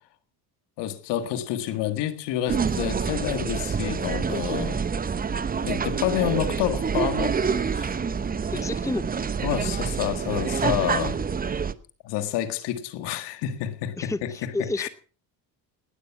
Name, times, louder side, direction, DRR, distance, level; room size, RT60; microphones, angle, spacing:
voice 1, 0.8-4.9 5.6-7.4 7.7-8.0 9.4-11.3 12.0-14.9, left 11 dB, 80° left, 1.8 m, -29 dB
sound 1, 2.5-11.7, right 6 dB, 20° right, 0.8 m, -27 dB
voice 2, 8.5-9.0 14.0-14.9, left 2 dB, 10° left, 0.8 m, -30 dB
19.5 x 8.5 x 5.8 m
cardioid pair, 110°, 41 cm